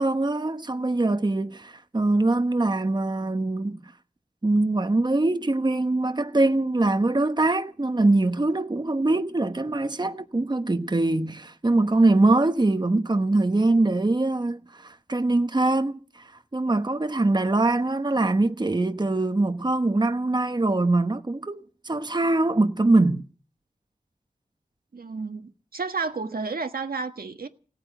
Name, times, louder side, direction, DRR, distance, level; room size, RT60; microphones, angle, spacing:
voice 1, 0.0-3.9 4.4-23.3, right 2 dB, 30° right, 1.0 m, -23 dB
voice 2, 24.9-27.5, right 4 dB, 80° right, 1.4 m, -31 dB
17.5 x 8.9 x 9.2 m
wide cardioid pair, 65°, 15 cm